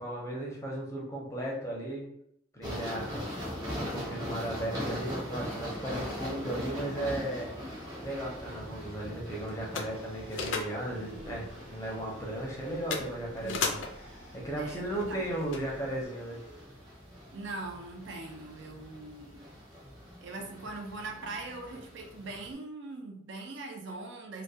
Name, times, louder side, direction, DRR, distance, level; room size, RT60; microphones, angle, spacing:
voice 1, 0.0-2.1 2.5-3.4 3.7-7.5 8.0-16.4, right 1 dB, 15° left, -3 dB, 0.5 m, -36 dB
sound 1, 2.6-22.5, equal, 20° right, 0.7 m, -41 dB
sound 2, 8.0-16.1, left 5 dB, 70° left, 0.4 m, -40 dB
sound 3, 9.3-16.6, right 1 dB, 75° right, 0.8 m, -55 dB
voice 2, 10.9-11.5 13.4-13.8 14.6-15.2 17.3-19.5 20.2-24.4, right 3 dB, 60° right, 3 dB, 0.4 m, -42 dB
2.2 x 2.1 x 2.6 m, 0.73 s
head